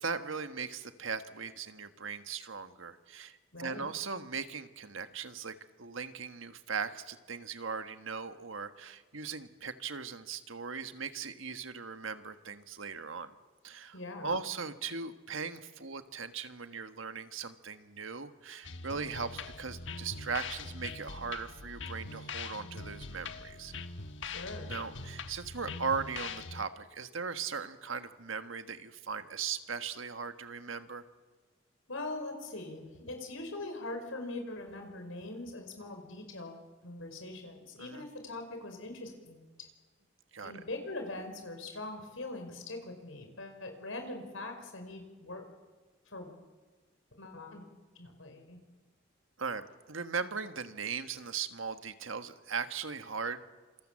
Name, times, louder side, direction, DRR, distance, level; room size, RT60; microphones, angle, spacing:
voice 1, 0.0-13.3 13.6-23.7 24.7-31.0 37.8-38.1 40.3-40.6 49.4-53.4, right 5 dB, 80° right, 9 dB, 1.5 m, -39 dB
voice 2, 3.5-3.9 13.9-14.4 24.2-24.7 31.9-39.7 40.4-45.4 46.1-46.3 47.2-47.7 48.0-48.6, left 2 dB, 85° left, 5 dB, 5.2 m, -42 dB
sound 1, 18.6-26.6, left 4 dB, 65° left, 1.3 m, -42 dB
27.0 x 26.0 x 7.6 m, 1.3 s
head